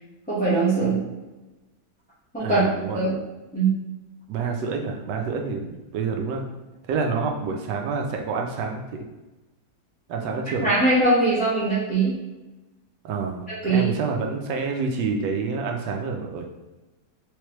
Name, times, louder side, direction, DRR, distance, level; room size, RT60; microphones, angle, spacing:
voice 1, 0.3-1.0 2.3-2.6 2.9-3.1 3.5-3.7 10.6-12.1 13.5-13.9, right 3 dB, 5° left, -14 dB, 1.0 m, -21 dB
voice 2, 2.4-3.0 4.3-6.4 6.9-9.0 10.1-10.8 13.0-16.5, right 4 dB, 90° right, 2 dB, 1.3 m, -28 dB
3.5 x 3.2 x 3.0 m, 1.1 s
omnidirectional pair, 1.8 m